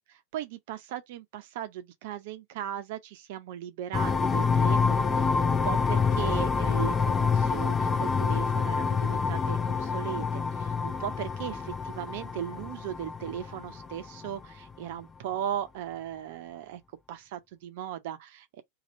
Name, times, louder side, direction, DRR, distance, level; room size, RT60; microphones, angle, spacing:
voice 1, 0.3-16.8 17.1-18.6, right 10 dB, 60° right, 0.6 m, -37 dB
sound 1, 3.9-14.4, left 5 dB, 20° left, 0.5 m, -27 dB
2.9 x 2.3 x 4.1 m
figure-of-eight pair, 90°, 0 cm